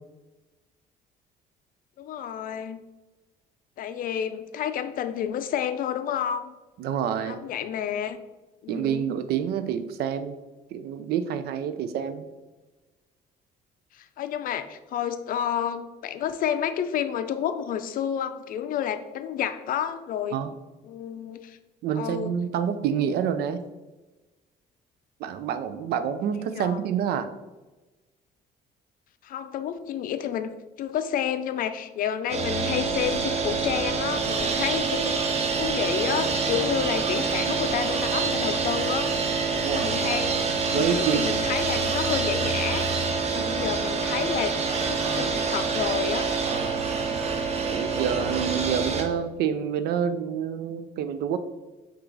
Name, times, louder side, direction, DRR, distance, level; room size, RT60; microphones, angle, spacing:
voice 1, 2.0-2.8 3.8-6.5 7.3-8.2 8.6-9.1 13.9-20.4 20.8-21.6 21.9-22.3 26.5-26.8 29.2-30.5 30.8-35.2 35.6-39.1 39.6-40.4 40.7-42.9 43.2-44.5 44.8-46.3, left 9 dB, 55° left, 10 dB, 0.4 m, -30 dB
voice 2, 6.8-7.4 8.7-10.4 10.7-12.3 20.3-20.5 21.8-23.7 25.2-27.3 39.6-39.9 40.7-41.3 43.3-43.5 46.5-46.8 47.7-51.4, right 8 dB, 75° right, 11 dB, 0.4 m, -28 dB
sound 1, 32.3-49.0, right 4 dB, 40° right, 0.7 m, -26 dB
5.6 x 2.5 x 3.8 m, 1.1 s
cardioid pair, 110°, 17 cm